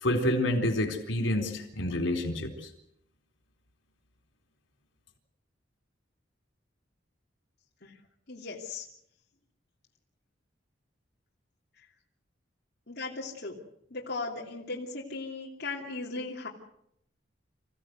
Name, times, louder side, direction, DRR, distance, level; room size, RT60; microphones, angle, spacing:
voice 1, 0.0-2.5, left 1 dB, 80° left, 4 dB, 4.0 m, -28 dB
voice 2, 8.3-8.9 12.9-13.6 13.9-16.5, left 3 dB, 55° left, -3 dB, 2.9 m, -37 dB
27.0 x 16.0 x 8.1 m, 0.76 s
head